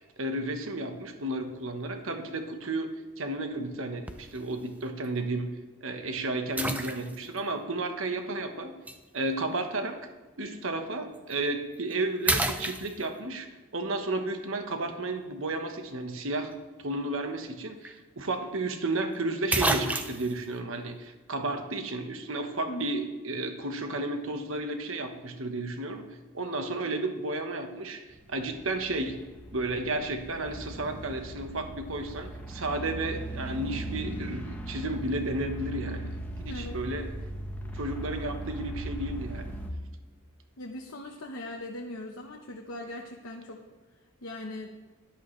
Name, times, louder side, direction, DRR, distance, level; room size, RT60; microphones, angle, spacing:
voice 1, 0.2-2.9 3.2-8.7 9.1-10.0 10.4-13.5 13.7-16.5 16.8-26.0 26.3-28.0 28.3-29.2 29.5-36.1 36.4-37.1 37.7-39.5, right 2 dB, 70° right, 6 dB, 1.2 m, -32 dB
sound 1, 4.1-4.4 5.0-5.1 6.6-7.4 8.9-9.0 11.1-11.3 11.8-11.9 12.3-13.3 17.5-17.6 17.8-17.9 19.0-19.1 19.5-20.4, right 2 dB, 5° right, 0.5 m, -29 dB
sound 2, 28.1-39.7, right 1 dB, 10° left, 0.9 m, -39 dB
voice 2, 40.6-43.6 43.9-44.7, left 1 dB, 80° left, 0 dB, 1.0 m, -40 dB
13.5 x 11.5 x 3.2 m, 1.3 s
head